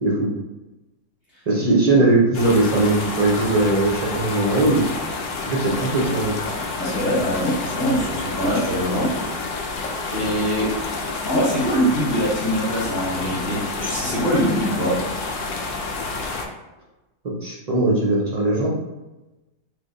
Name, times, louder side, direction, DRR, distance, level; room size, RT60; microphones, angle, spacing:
voice 1, 1.5-4.8 5.4-6.4 17.4-18.7, right 2 dB, 55° right, -5 dB, 0.4 m, -19 dB
sound 1, 2.3-16.5, left 3 dB, 65° left, 0.8 m, -29 dB
voice 2, 6.8-9.2 10.1-10.7 11.3-15.0, equal, 30° left, -7 dB, 1.1 m, -23 dB
3.3 x 2.1 x 3.7 m, 1.0 s
omnidirectional pair, 1.6 m